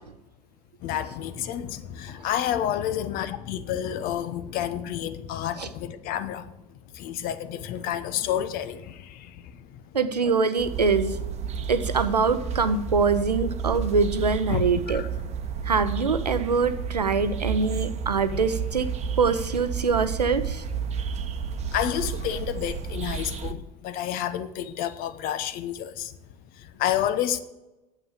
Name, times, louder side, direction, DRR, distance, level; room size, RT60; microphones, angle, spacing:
voice 1, 0.8-9.8 14.5-15.1 21.4-26.2 26.5-27.4, left 10 dB, 45° left, 0.9 m, -30 dB
voice 2, 9.9-11.2 11.7-15.0 15.6-18.9 19.2-20.6, right 4 dB, 85° right, 0.8 m, -24 dB
sound 1, 10.6-23.5, right 7 dB, 35° right, 1.0 m, -31 dB
9.0 x 8.1 x 7.3 m
figure-of-eight pair, 70°, 20 cm